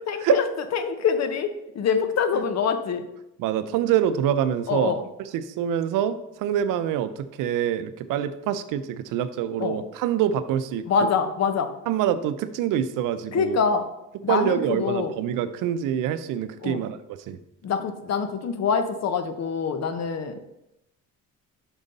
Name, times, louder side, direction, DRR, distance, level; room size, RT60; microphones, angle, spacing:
voice 1, 0.1-0.4 0.7-3.1 4.7-5.0 9.6-9.8 10.9-11.7 13.3-13.9 14.2-15.2 16.6-16.8 17.6-20.5, left 6 dB, 55° left, 9 dB, 0.8 m, -25 dB
voice 2, 3.4-4.9 5.3-11.1 11.9-13.6 14.3-17.0 17.3-17.4, right 10 dB, 90° right, 12 dB, 0.5 m, -25 dB
6.2 x 5.2 x 4.0 m, 0.87 s
cardioid pair, 100°, 31 cm